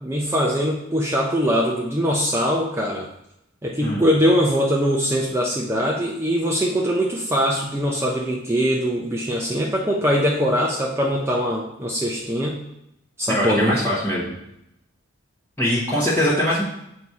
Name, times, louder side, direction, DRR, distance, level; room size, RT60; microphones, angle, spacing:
voice 1, 0.0-3.1 3.6-12.6 13.2-13.8, equal, 10° right, -2 dB, 0.5 m, -22 dB
voice 2, 13.3-14.3 15.6-16.6, equal, 10° left, -10 dB, 1.0 m, -22 dB
7.7 x 2.8 x 4.6 m, 0.82 s
head